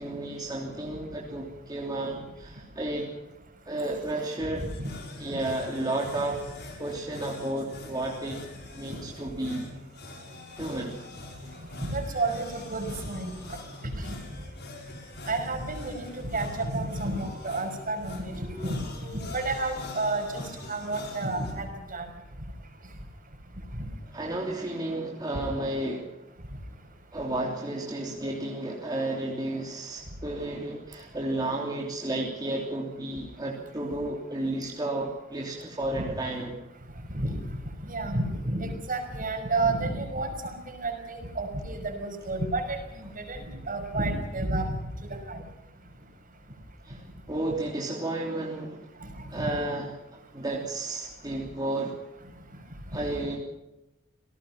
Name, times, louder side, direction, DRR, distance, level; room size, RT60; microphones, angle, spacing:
voice 1, 0.0-3.1 3.6-4.7 5.2-6.4 6.8-8.4 8.7-9.7 10.6-11.0 24.1-26.1 27.1-36.6 46.8-48.9 49.3-49.9 50.3-52.0 52.9-53.4, right 1 dB, 20° right, -2 dB, 3.2 m, -32 dB
sound 1, 4.6-21.5, left 3 dB, 55° left, 5.6 m, -44 dB
voice 2, 11.8-13.3 13.8-14.1 15.3-18.9 19.1-20.4 20.7-22.1 23.7-23.9 35.9-36.0 37.1-37.4 37.9-42.8 43.2-45.4 49.4-49.6 52.9-53.0, right 2 dB, 45° right, 5 dB, 5.7 m, -31 dB
29.0 x 18.5 x 5.9 m, 0.97 s
head